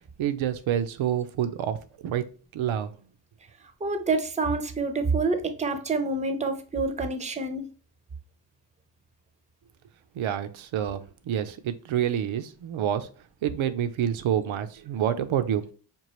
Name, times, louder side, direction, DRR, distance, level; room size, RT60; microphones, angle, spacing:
voice 1, 0.2-2.3 2.5-3.0 10.1-13.1 13.4-15.7, right 10 dB, 75° right, 0.6 m, -28 dB
voice 2, 3.8-7.7, right 3 dB, 15° right, 0.6 m, -27 dB
5.3 x 2.4 x 3.0 m
cardioid pair, 70°, 48 cm